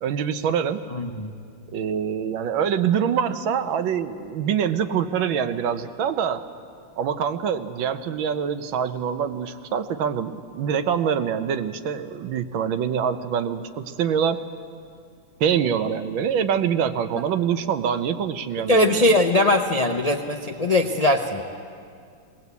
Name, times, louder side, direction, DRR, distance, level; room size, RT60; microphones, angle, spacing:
voice 1, 0.0-0.8 1.7-6.4 7.0-14.4 15.4-19.0, right 8 dB, 80° right, 10 dB, 1.6 m, -25 dB
voice 2, 0.9-1.3 18.7-21.4, left 1 dB, 55° left, 4 dB, 0.4 m, -20 dB
20.0 x 19.0 x 8.2 m, 2.3 s
omnidirectional pair, 2.1 m